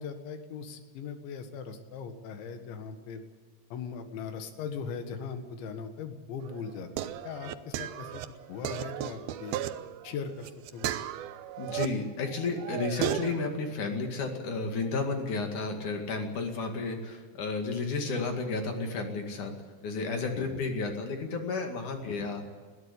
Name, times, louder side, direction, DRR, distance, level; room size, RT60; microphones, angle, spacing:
voice 1, 0.0-3.2 3.7-8.2 8.5-9.6 10.0-10.9 20.4-20.7 22.1-22.3, left 6 dB, 80° left, 7 dB, 4.0 m, -39 dB
sound 1, 6.4-11.9 12.3-13.4, right 12 dB, 85° right, 2.1 m, -35 dB
voice 2, 11.6-19.5 19.8-22.4, left 3 dB, 50° left, 4 dB, 3.0 m, -32 dB
21.5 x 15.5 x 8.4 m, 1.5 s
omnidirectional pair, 5.3 m